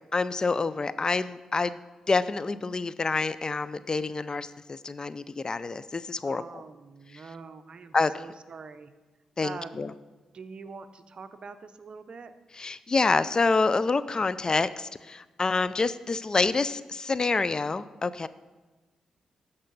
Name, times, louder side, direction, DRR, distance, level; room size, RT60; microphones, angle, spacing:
voice 1, 0.1-1.8 2.1-6.6 7.9-8.1 9.4-9.9 12.6-18.3, left 3 dB, 35° left, 16 dB, 0.4 m, -27 dB
voice 2, 6.2-8.9 9.4-9.8 10.3-12.3, right 5 dB, 55° right, 11 dB, 0.7 m, -44 dB
13.5 x 5.5 x 4.0 m, 1.2 s
supercardioid pair, 50°, 2 cm